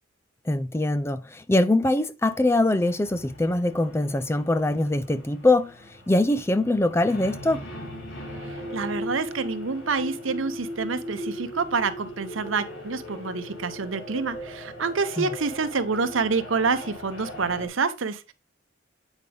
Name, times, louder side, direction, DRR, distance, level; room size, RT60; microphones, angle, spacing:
voice 1, 0.5-7.7 15.2-15.3, left 2 dB, 15° left, 0.3 m, -23 dB
sound 1, 2.2-17.7, equal, 75° left, 2.8 m, -39 dB
voice 2, 8.5-18.3, right 4 dB, 90° right, 0.8 m, -27 dB
8.1 x 5.1 x 3.4 m
head